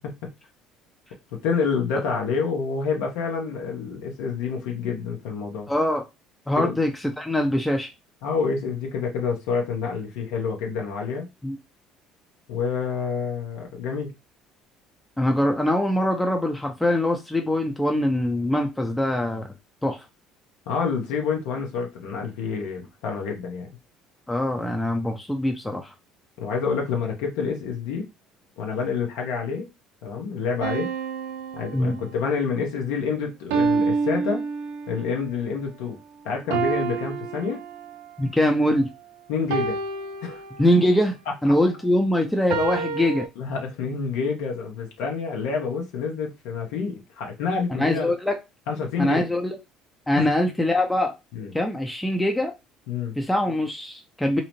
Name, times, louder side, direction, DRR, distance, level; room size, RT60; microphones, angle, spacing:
voice 1, 1.4-5.7 6.6-6.8 8.2-11.3 12.5-14.1 20.7-23.7 26.4-28.1 28.6-29.7 30.0-30.9 31.5-34.4 34.9-36.0 36.2-37.6 39.3-39.7 40.2-40.4 43.4-48.1 48.7-49.3 50.1-50.3 51.3-51.5 52.9-53.2, left 5 dB, 75° left, 0.7 m, -28 dB
voice 2, 5.7-6.0 6.5-6.9 7.2-7.9 11.4-11.6 15.2-19.5 19.8-20.0 24.3-25.9 31.7-32.0 38.2-38.9 40.6-41.1 41.4-43.3 47.8-48.3 49.0-49.6 50.1-51.1 51.5-52.5 53.2-54.4, left 1 dB, 10° left, 0.5 m, -23 dB
sound 1, 30.6-32.4 33.5-35.1 36.5-38.2 39.5-41.0 42.5-43.3, right 5 dB, 80° right, 0.4 m, -28 dB
2.7 x 2.0 x 3.0 m
hypercardioid pair, 65°, 0 cm